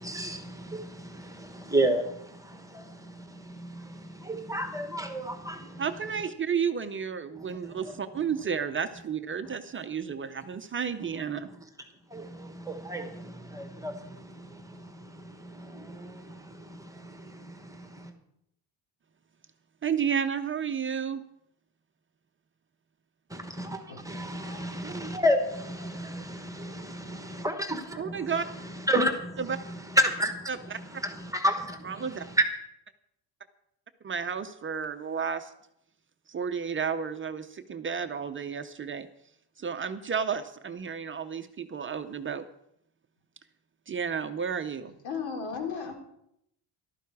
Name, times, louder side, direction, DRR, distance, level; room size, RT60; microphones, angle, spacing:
voice 1, 0.0-5.8 7.3-7.9 12.1-18.1 23.3-32.4, equal, 5° right, 6 dB, 1.2 m, -32 dB
voice 2, 5.8-11.5 19.8-21.2 28.0-28.5 29.4-29.6 30.5-30.8 31.8-32.3 34.0-35.5 36.3-39.1 39.6-42.4 43.9-44.9, right 7 dB, 25° right, 8 dB, 0.6 m, -32 dB
voice 3, 23.9-24.7 25.8-26.0 45.0-45.9, left 6 dB, 85° left, 1 dB, 3.9 m, -37 dB
14.0 x 12.5 x 4.7 m, 0.77 s
cardioid pair, 155°, 45 cm